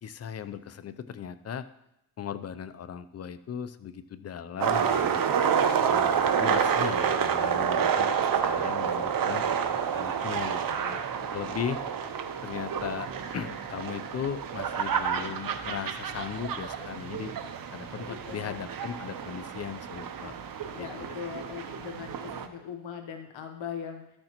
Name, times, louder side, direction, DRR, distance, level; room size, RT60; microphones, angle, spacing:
voice 1, 0.0-1.7 2.2-5.3 5.8-10.6 11.3-11.8 12.4-17.3 17.7-20.3 20.8-21.1, left 8 dB, 35° left, 12 dB, 0.5 m, -37 dB
sound 1, 4.6-22.5, right 7 dB, 45° right, 0.8 m, -29 dB
voice 2, 10.8-11.6 18.0-18.6 20.7-24.1, left 7 dB, 75° left, 5 dB, 1.0 m, -40 dB
13.0 x 6.5 x 3.0 m, 0.85 s
cardioid pair, 90°, 46 cm